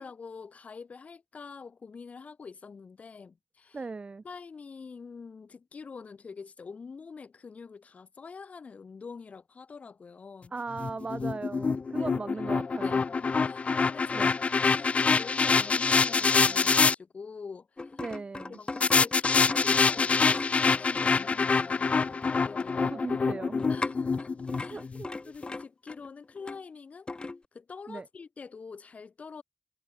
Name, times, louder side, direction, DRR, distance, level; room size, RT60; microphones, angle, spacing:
voice 1, 0.0-3.8 4.2-10.5 11.8-12.1 12.8-18.0 18.5-22.9 23.7-24.8 25.2-27.1 27.5-29.4, left 5 dB, 90° left, 5.0 m, -45 dB
voice 2, 3.7-4.2 10.5-13.0 14.1-14.3 18.0-18.6 22.8-23.7 24.5-25.1 27.9-28.1, right 4 dB, 55° right, 3.9 m, -38 dB
sound 1, 10.8-16.9 18.8-25.0, left 4 dB, 70° left, 0.8 m, -25 dB
sound 2, 17.8-21.4 21.7-22.8 23.6-26.6 27.1-27.4, left 3 dB, 45° left, 5.7 m, -38 dB
wide cardioid pair, 105°, 2 cm